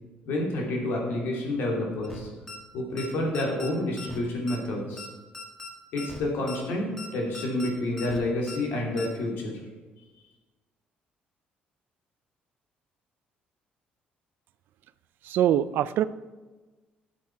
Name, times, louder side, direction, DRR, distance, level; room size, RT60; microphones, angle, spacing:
voice 1, 0.2-2.3 2.7-5.0 5.9-9.5, left 1 dB, 80° left, 0 dB, 3.0 m, -29 dB
sound 1, 2.0-2.2 2.5-2.6 3.0-3.1 3.3-3.7 4.0-4.2 4.5-4.6 5.0-5.1 5.3-5.7 6.0-6.2 6.5-6.6 7.0-7.1 7.3-7.7 8.0-8.2 8.5-8.6 9.0-9.1, left 3 dB, 10° left, 1.6 m, -40 dB
voice 2, 15.3-16.0, right 11 dB, 70° right, 16 dB, 0.4 m, -23 dB
13.0 x 7.7 x 4.6 m, 1.2 s
cardioid pair, 125°, 4 cm